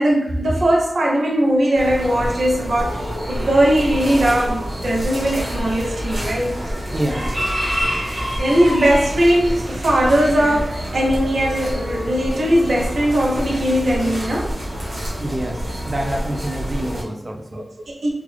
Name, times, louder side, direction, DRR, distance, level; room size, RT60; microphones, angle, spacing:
voice 1, 0.0-6.6 8.4-14.6 17.5-18.1, equal, 80° right, -2 dB, 0.6 m, -19 dB
sound 1, 1.7-17.0, equal, 65° right, 1.3 m, -27 dB
voice 2, 6.9-7.4 15.2-17.6, right 1 dB, 35° right, 1 dB, 0.6 m, -27 dB
3.6 x 2.4 x 3.2 m, 0.78 s
wide cardioid pair, 80°, 0 cm